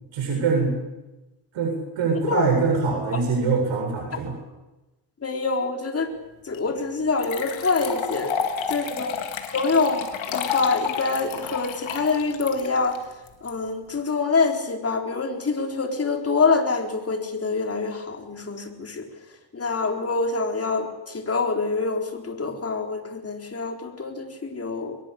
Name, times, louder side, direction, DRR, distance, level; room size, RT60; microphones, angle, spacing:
voice 1, 0.1-0.7 1.5-4.3, right 4 dB, 75° right, 1 dB, 7.8 m, -23 dB
voice 2, 5.2-6.1 6.4-8.4 8.7-9.1 9.5-13.0 13.4-19.1 19.5-25.0, left 4 dB, 30° left, 4 dB, 4.1 m, -25 dB
sound 1, 6.5-6.6 7.2-13.5, left 8 dB, 75° left, 3.6 m, -30 dB
24.0 x 22.0 x 8.6 m, 1.0 s
cardioid pair, 105°, 47 cm